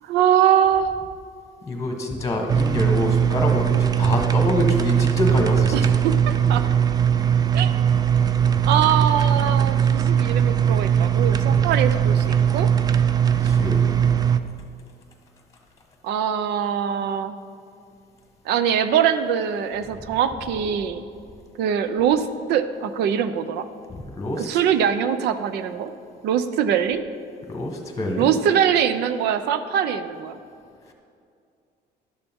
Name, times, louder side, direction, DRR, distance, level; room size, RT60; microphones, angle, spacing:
voice 1, 0.0-0.9 5.7-6.6 7.5-7.7 8.6-12.3 12.5-12.7 16.0-17.3 18.5-21.0 21.6-23.7 24.4-25.9 26.2-27.0 28.2-30.4, right 8 dB, 80° right, 11 dB, 0.5 m, -22 dB
voice 2, 1.6-5.9 8.2-8.7 11.4-11.6 13.3-13.9 23.9-24.5 27.5-28.3 30.9-31.0, left 1 dB, 20° left, 2 dB, 1.3 m, -26 dB
sound 1, 2.5-14.4, right 8 dB, 25° right, 0.3 m, -20 dB
11.0 x 6.8 x 3.6 m, 2.4 s
cardioid pair, 110°, 17 cm